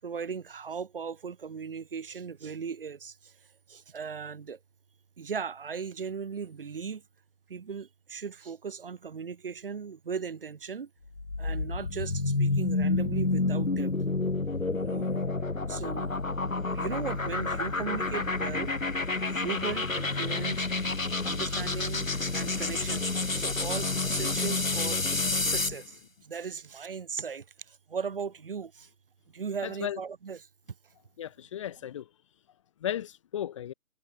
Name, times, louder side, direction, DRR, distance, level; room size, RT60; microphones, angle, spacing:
voice 1, 0.0-3.3 3.7-4.6 5.2-7.0 7.5-10.9 11.4-13.9 14.8-15.3 15.7-16.1 16.7-18.7 19.2-20.7 21.2-23.1 23.3-25.0 25.4-28.9 29.3-30.5, right 6 dB, 40° right, 6.9 m, -37 dB
sound 1, 11.1-25.8, left 3 dB, 65° left, 7.4 m, -29 dB
voice 2, 31.2-32.0 32.8-33.7, left 10 dB, 20° left, 3.6 m, -34 dB
figure-of-eight pair, 155°, 44 cm